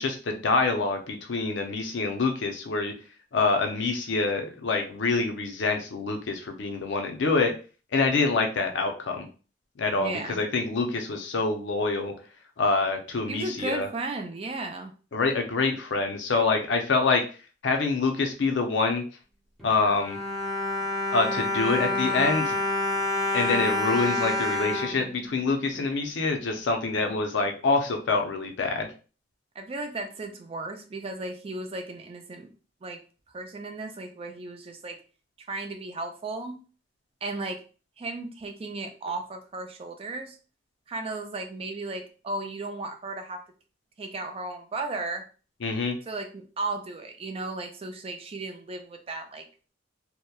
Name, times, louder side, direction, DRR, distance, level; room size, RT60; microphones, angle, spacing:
voice 1, 0.0-2.9 3.3-7.5 7.9-9.3 9.8-12.1 12.6-13.9 15.1-17.2 17.6-19.0 19.6-20.2 21.1-22.6 23.3-28.9 45.6-46.0, left 3 dB, 75° left, 4 dB, 0.5 m, -26 dB
voice 2, 9.9-10.4 13.3-14.9 29.6-32.5 32.8-33.0 33.3-35.0 35.4-36.6 37.2-37.6 38.0-40.4 40.9-43.4 44.0-45.2 46.1-49.5, right 2 dB, 30° right, 5 dB, 0.3 m, -35 dB
Bowed string instrument, 19.6-25.8 26.5-26.6 26.9-27.1, left 2 dB, ahead, 0.7 m, -28 dB
2.8 x 2.1 x 2.2 m, 0.36 s
head